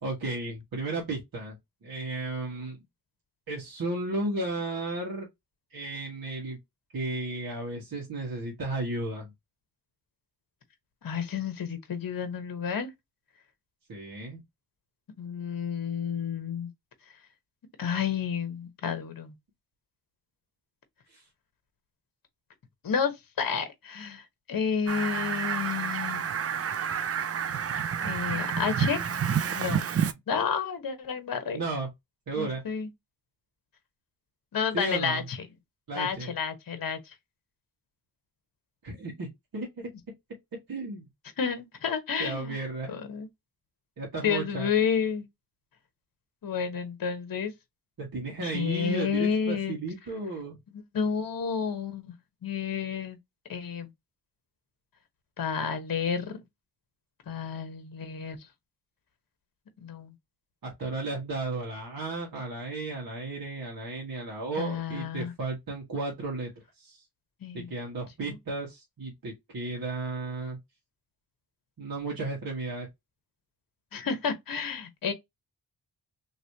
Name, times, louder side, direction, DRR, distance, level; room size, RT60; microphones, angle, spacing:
voice 1, 0.0-1.6 1.8-2.8 3.5-5.3 5.7-6.6 6.9-9.3 13.9-14.4 21.1-21.2 31.5-31.9 32.3-32.6 34.7-35.2 35.9-36.3 38.8-39.9 40.5-41.0 42.2-42.9 44.0-44.7 48.0-50.6 60.6-66.5 66.8-67.0 67.5-70.6 71.8-72.9, right 2 dB, 55° right, 1.5 m, -34 dB
voice 2, 11.0-12.9 15.2-16.7 17.8-19.3 22.8-26.2 28.0-29.1 29.5-29.9 30.3-31.6 32.4-32.9 34.5-35.4 35.9-37.1 41.4-42.6 42.9-43.3 44.2-45.3 46.4-47.5 48.4-49.8 50.7-52.1 52.4-53.2 53.5-53.9 55.4-56.4 57.3-58.4 59.8-60.1 64.5-65.3 67.4-67.7 68.2-68.4 73.9-75.1, left 6 dB, 55° left, 1.0 m, -30 dB
Fowl, 24.9-30.1, right 7 dB, 35° right, 0.4 m, -29 dB
3.1 x 3.1 x 2.7 m
cardioid pair, 70°, 41 cm